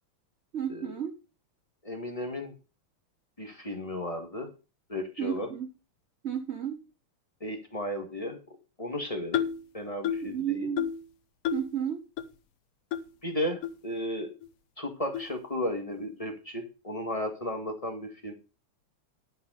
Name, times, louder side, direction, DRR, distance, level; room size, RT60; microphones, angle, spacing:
voice 1, 0.5-1.1 5.2-5.7 6.2-6.8 10.2-10.9 11.5-12.0, right 9 dB, 55° right, 7 dB, 0.7 m, -32 dB
voice 2, 1.8-2.5 3.4-4.5 4.9-5.5 7.4-8.4 8.8-9.4 9.7-10.7 13.2-14.3 14.8-18.3, left 1 dB, 15° left, 5 dB, 1.8 m, -34 dB
sound 1, 9.3-9.6 10.0-10.3 10.8-11.0 11.4-11.7 12.2-12.3 12.9-13.0 13.6-13.7 14.4-14.5 15.1-15.3, left 10 dB, 85° left, 1.8 m, -30 dB
12.0 x 5.6 x 6.4 m, 0.32 s
omnidirectional pair, 2.4 m